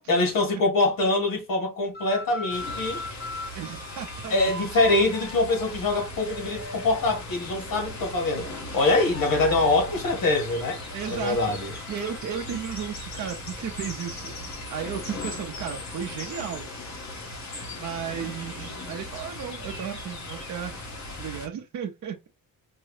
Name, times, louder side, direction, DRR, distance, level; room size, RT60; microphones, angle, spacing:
voice 1, 0.1-3.0 4.3-10.8 11.1-11.7, left 2 dB, 75° left, 1.8 m, -24 dB
sound 1, 1.9-7.2 7.6-12.9, left 1 dB, 30° left, 0.7 m, -41 dB
sound 2, 2.5-21.5, left 1 dB, 55° left, 1.2 m, -38 dB
voice 2, 3.5-4.8 10.9-11.5 11.9-16.7 17.8-20.8 21.2-22.2, right 8 dB, 55° right, 0.5 m, -34 dB
4.6 x 2.0 x 3.1 m
wide cardioid pair, 175°, 34 cm